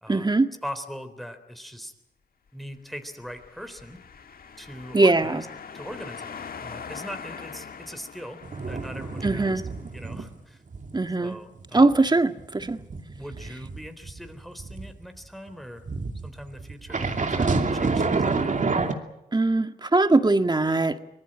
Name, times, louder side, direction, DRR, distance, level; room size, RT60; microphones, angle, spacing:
voice 1, 0.1-0.5 4.9-5.4 9.2-9.6 10.9-11.4 11.7-12.8 19.3-21.0, right 2 dB, 25° right, 8 dB, 1.8 m, -21 dB
voice 2, 0.6-1.9 2.5-4.0 4.6-5.5 5.7-8.4 8.7-9.6 9.9-10.6 11.2-11.9 13.1-15.8 16.2-18.7, equal, ahead, 8 dB, 3.8 m, -40 dB
sound 1, 3.1-9.8, left 6 dB, 65° left, 1.6 m, -42 dB
sound 2, 8.4-10.3 10.7-10.9 11.3-14.9 15.9-18.9, right 4 dB, 50° right, 2.8 m, -28 dB
25.0 x 18.5 x 8.8 m, 0.86 s
cardioid pair, 55°, 16 cm